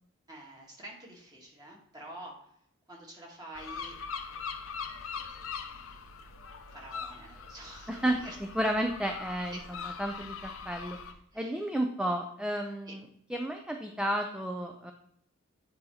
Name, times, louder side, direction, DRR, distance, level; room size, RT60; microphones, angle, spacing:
voice 1, 0.3-2.5 2.9-5.0 5.4-6.3 6.7-8.4 9.5-9.8 11.3-11.6 12.9-13.0, right 1 dB, 20° right, -2 dB, 1.8 m, -49 dB
sound 1, 3.5-11.1, left 5 dB, 85° left, 0.7 m, -42 dB
voice 2, 7.9-8.2 8.6-9.6 10.0-11.0 11.3-13.0 13.3-14.9, right 1 dB, 5° right, 3 dB, 0.4 m, -32 dB
8.6 x 2.9 x 4.9 m, 0.71 s
head